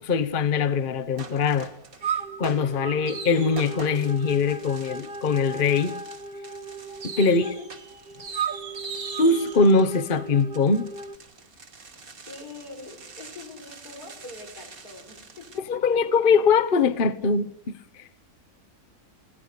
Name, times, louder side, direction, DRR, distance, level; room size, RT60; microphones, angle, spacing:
voice 1, 0.1-1.7 2.1-5.9 7.0-7.4 9.2-10.9 15.7-17.5 18.0-18.2, left 4 dB, 40° left, 1.1 m, -22 dB
sound 1, 1.2-2.0 2.4-15.6, right 4 dB, 65° right, 2.4 m, -43 dB
sound 2, 2.0-11.2, right 5 dB, 40° right, 1.6 m, -36 dB
voice 2, 7.3-7.7 12.3-15.8, left 3 dB, 90° left, 6.4 m, -43 dB
22.5 x 17.5 x 8.3 m
omnidirectional pair, 1.6 m